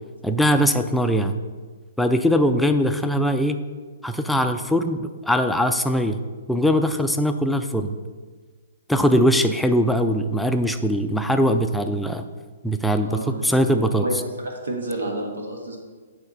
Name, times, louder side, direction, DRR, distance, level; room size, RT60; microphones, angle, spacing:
voice 1, 0.2-1.4 2.0-3.6 4.0-6.2 6.5-7.9 8.9-12.2 12.6-14.0, equal, ahead, 6 dB, 0.4 m, -21 dB
voice 2, 13.0-13.4 13.7-14.2 14.4-15.8, right 1 dB, 90° right, 1 dB, 1.7 m, -30 dB
9.0 x 3.6 x 5.4 m, 1.4 s
hypercardioid pair, 145°, 0 cm